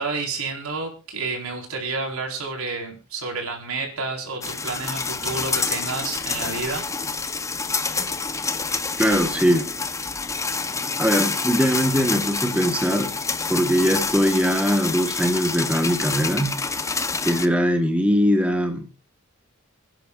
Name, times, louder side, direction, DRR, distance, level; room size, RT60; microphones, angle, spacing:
voice 1, 0.0-6.9, right 3 dB, 80° right, 1 dB, 4.4 m, -30 dB
sound 1, 4.4-17.5, left 4 dB, 15° left, 0.8 m, -27 dB
voice 2, 9.0-9.7 11.0-13.2 13.5-16.7 17.2-18.9, equal, 5° right, 5 dB, 1.2 m, -21 dB
28.5 x 10.5 x 2.4 m, 0.32 s
head